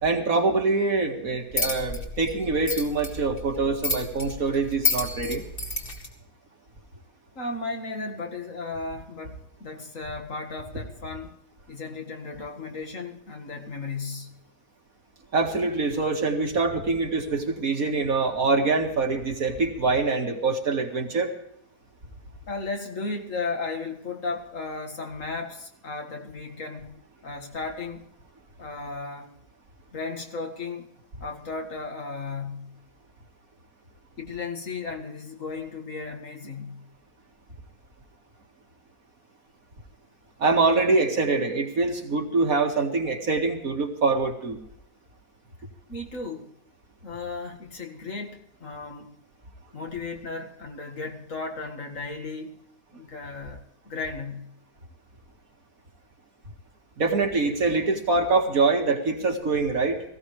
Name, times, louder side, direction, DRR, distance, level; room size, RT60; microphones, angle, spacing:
voice 1, 0.0-5.5 15.3-21.3 40.4-44.6 57.0-60.0, right 3 dB, 60° right, 2.3 m, -24 dB
sound 1, 1.5-6.1, left 3 dB, 35° left, 2.5 m, -30 dB
voice 2, 7.3-11.4 11.7-14.4 22.5-28.1 28.6-29.4 29.9-30.9 31.2-32.8 34.2-36.9 45.9-46.6 47.0-49.2 49.7-54.6, left 3 dB, 50° left, 2.2 m, -35 dB
18.5 x 16.5 x 3.2 m
omnidirectional pair, 1.7 m